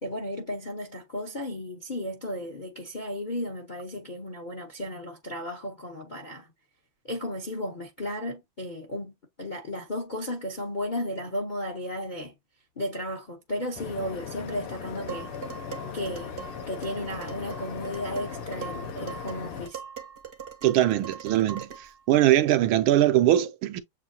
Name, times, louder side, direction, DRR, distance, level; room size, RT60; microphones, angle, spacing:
voice 1, 0.0-6.5 7.0-12.3 12.8-15.3 15.9-16.3 16.7-19.8, left 1 dB, 50° left, 0.5 m, -34 dB
sound 1, 13.8-19.7, left 6 dB, 85° left, 1.8 m, -38 dB
Dishes pots and pans, 15.1-22.0, right 7 dB, 50° right, 0.7 m, -41 dB
voice 2, 20.6-21.7 22.1-23.8, right 13 dB, 75° right, 1.4 m, -21 dB
7.4 x 2.6 x 2.7 m
omnidirectional pair, 2.4 m